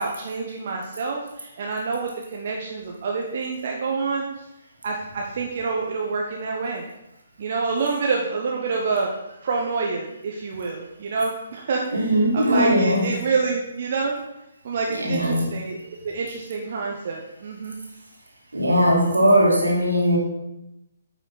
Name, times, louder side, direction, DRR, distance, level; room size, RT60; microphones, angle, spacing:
voice 1, 0.0-4.2 4.8-6.8 7.4-9.1 9.4-14.1 14.6-15.8 16.0-17.8, right 4 dB, 50° right, -1 dB, 1.0 m, -27 dB
voice 2, 11.9-13.2 14.8-15.5 18.5-20.2, equal, 80° right, -2 dB, 2.4 m, -19 dB
9.5 x 5.7 x 4.1 m, 0.91 s
figure-of-eight pair, 130°, 0 cm